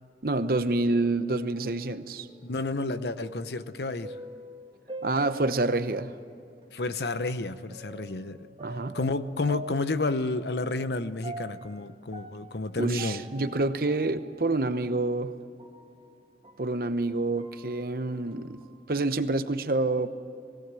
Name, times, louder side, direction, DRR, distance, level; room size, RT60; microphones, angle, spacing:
voice 1, 0.2-2.3 5.0-6.1 8.6-9.0 12.8-15.3 16.6-18.6 18.9-20.1, right 2 dB, 55° right, 11 dB, 0.9 m, -27 dB
sound 1, 1.5-6.1 6.6-6.7 7.7-16.7 17.1-19.0, right 1 dB, 30° right, 1.8 m, -46 dB
voice 2, 2.4-4.1 6.7-8.5 8.9-13.2, left 2 dB, 70° left, 12 dB, 0.8 m, -30 dB
19.5 x 17.5 x 7.6 m, 2.6 s
head